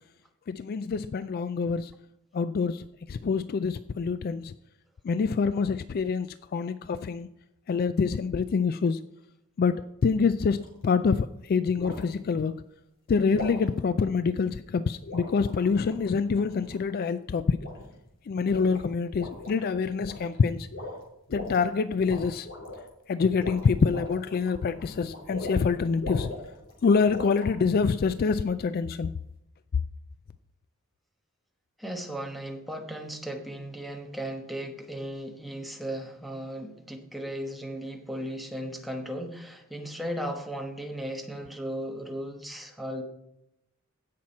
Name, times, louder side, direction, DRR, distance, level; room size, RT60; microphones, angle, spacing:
voice 1, 0.5-1.9 2.3-2.8 3.1-4.5 5.0-7.3 7.7-9.0 9.6-12.6 13.1-17.6 18.3-20.7 21.3-22.5 23.1-26.3 26.8-29.1, left 5 dB, 45° left, 13 dB, 0.3 m, -26 dB
sound 1, 10.6-10.8 11.8-12.1 13.3-13.6 15.0-16.9 17.6-18.1 18.4-18.8 19.1-19.6 19.9-20.4 20.7-21.6 22.0-22.9 23.3-25.7 26.0-27.5, left 2 dB, 60° left, 3.4 m, -39 dB
voice 2, 31.8-43.0, equal, ahead, 3 dB, 1.1 m, -36 dB
16.0 x 6.0 x 4.3 m, 0.85 s
head